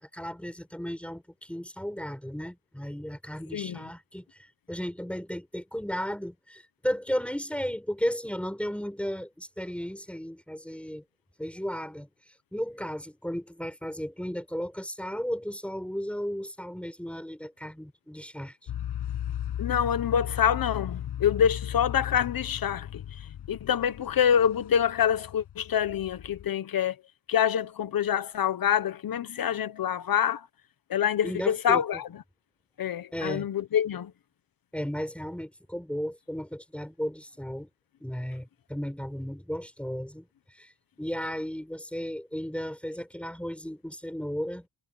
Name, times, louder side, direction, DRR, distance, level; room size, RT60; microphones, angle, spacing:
voice 1, 0.0-11.0 11.4-18.7 31.2-31.8 33.1-33.5 34.7-37.7 38.0-40.7 41.0-44.7, equal, 5° left, 5.8 m, -34 dB
voice 2, 3.5-3.8 19.6-23.0 23.5-26.9 27.3-30.4 30.9-32.0 32.8-34.1, left 9 dB, 60° left, 1.3 m, -26 dB
sound 1, 18.7-26.5, left 10 dB, 85° left, 6.9 m, -36 dB
cardioid pair, 120°, 40 cm